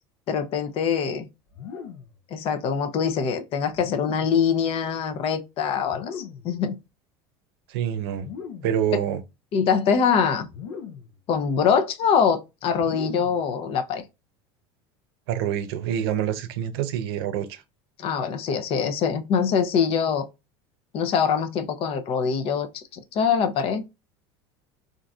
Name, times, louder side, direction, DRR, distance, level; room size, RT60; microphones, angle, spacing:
voice 1, 0.3-1.3 2.3-6.8 9.5-10.5 11.3-14.0 18.0-20.3 20.9-23.8, left 6 dB, 50° left, 0.6 m, -24 dB
sound 1, 1.5-2.2 3.7-4.5 5.8-6.6 8.1-8.8 10.5-11.2 12.7-13.5, left 7 dB, 80° left, 0.7 m, -39 dB
voice 2, 7.7-8.3 8.6-9.2 15.3-17.6, right 10 dB, 80° right, 0.7 m, -26 dB
3.8 x 2.6 x 2.3 m
supercardioid pair, 110°, 13 cm